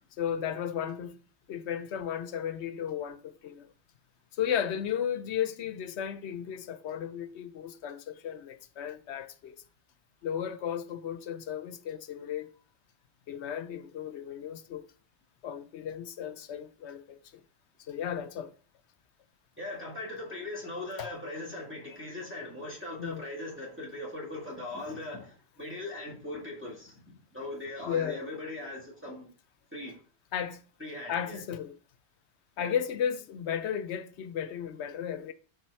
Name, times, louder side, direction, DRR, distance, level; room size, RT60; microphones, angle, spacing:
voice 1, 0.2-1.2 1.5-3.7 4.3-9.6 10.2-12.5 13.3-14.8 15.4-17.4 17.8-18.5 21.0-21.1 23.0-23.2 27.9-28.3 30.3-30.6 31.1-31.8 32.6-35.3, left 9 dB, 80° left, 0.9 m, -34 dB
voice 2, 19.6-29.3 29.7-30.0 30.8-31.4 32.6-32.8, left 2 dB, 10° right, 1.8 m, -40 dB
7.4 x 3.6 x 4.6 m
omnidirectional pair, 1.1 m